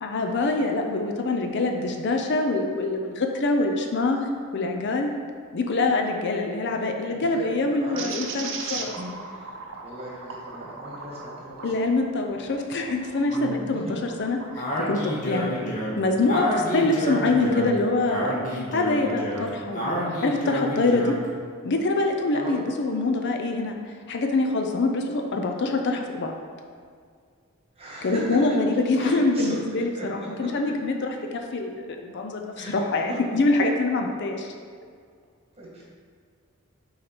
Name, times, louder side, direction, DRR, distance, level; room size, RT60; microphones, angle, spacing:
voice 1, 0.0-4.3 4.5-5.1 5.5-9.0 11.6-21.2 21.6-23.7 24.1-26.3 28.0-34.5, left 2 dB, 50° left, 3 dB, 0.5 m, -25 dB
voice 2, 7.2-8.3 8.7-11.9 13.3-13.8 15.4-15.5 20.9-21.1 22.3-22.6 27.7-29.6 29.9-30.1 31.2-31.3 32.6-32.8 33.1-33.4 35.6-35.8, right 1 dB, 30° right, -5 dB, 1.5 m, -38 dB
sound 1, 8.0-13.5 14.0-15.2, right 4 dB, 60° right, 0.7 m, -38 dB
Speech, 14.6-21.3, equal, 35° left, 1.2 m, -29 dB
6.4 x 4.0 x 4.4 m, 2.1 s
head